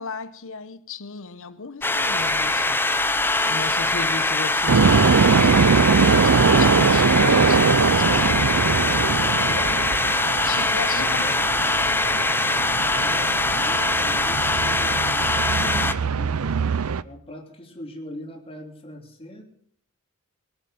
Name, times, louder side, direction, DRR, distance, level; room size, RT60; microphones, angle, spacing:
voice 1, 0.0-3.1 3.5-8.9 10.4-11.2 11.5-11.6 15.5-15.9, left 4 dB, 65° left, 0.9 m, -35 dB
sound 1, 1.8-15.9, left 2 dB, 10° left, 0.8 m, -22 dB
sound 2, 4.7-17.0, right 5 dB, 80° right, 0.6 m, -22 dB
voice 2, 9.1-10.0 10.9-11.5 12.9-16.5 17.0-19.4, left 1 dB, 25° left, 3.2 m, -41 dB
22.5 x 8.3 x 7.7 m
head